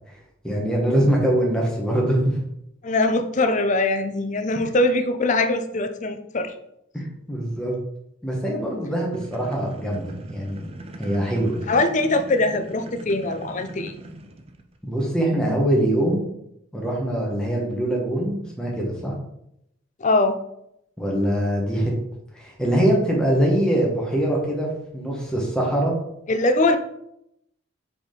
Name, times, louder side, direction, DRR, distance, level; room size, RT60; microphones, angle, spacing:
voice 1, 0.4-2.4 6.9-7.7 8.2-10.7 11.0-11.6 14.8-16.3 16.7-19.1 21.0-21.9 22.3-24.7 24.9-25.9, right 1 dB, 5° left, -2 dB, 1.3 m, -23 dB
voice 2, 2.8-6.5 11.7-13.9 20.0-20.4 26.3-26.8, left 2 dB, 35° left, 8 dB, 0.5 m, -22 dB
sound 1, 9.1-14.8, right 2 dB, 25° right, 0.5 m, -40 dB
5.1 x 4.9 x 3.8 m, 0.79 s
head